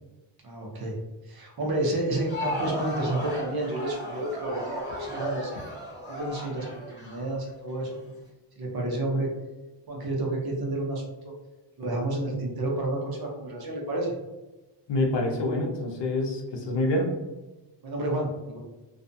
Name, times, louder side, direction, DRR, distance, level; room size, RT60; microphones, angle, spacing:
voice 1, 0.4-1.0 1.3-5.5 6.1-6.7 6.9-8.0 8.6-9.3 9.9-11.3 11.8-14.1 17.8-18.6, right 1 dB, 55° right, -1 dB, 0.7 m, -30 dB
Crowd, 2.0-7.9, equal, 25° left, 0.9 m, -35 dB
voice 2, 14.9-17.1, left 1 dB, 70° left, 1 dB, 0.6 m, -26 dB
2.5 x 2.2 x 2.6 m, 1.1 s
wide cardioid pair, 180°, 44 cm